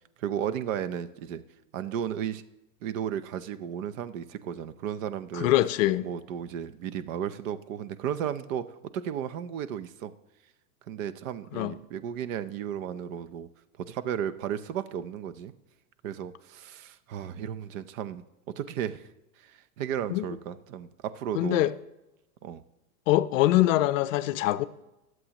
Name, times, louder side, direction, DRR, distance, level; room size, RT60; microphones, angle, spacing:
voice 1, 0.2-1.4 1.7-2.4 2.8-5.5 6.0-10.1 10.9-13.5 13.8-15.5 16.0-18.2 18.6-19.1 19.4-21.6 22.4-22.6, right 9 dB, 55° right, 0.8 m, -34 dB
voice 2, 5.3-6.1 11.5-11.7 20.1-20.3 21.4-21.7 23.1-24.6, left 15 dB, 55° left, 0.6 m, -23 dB
20.5 x 7.8 x 3.0 m
hypercardioid pair, 135°, 47 cm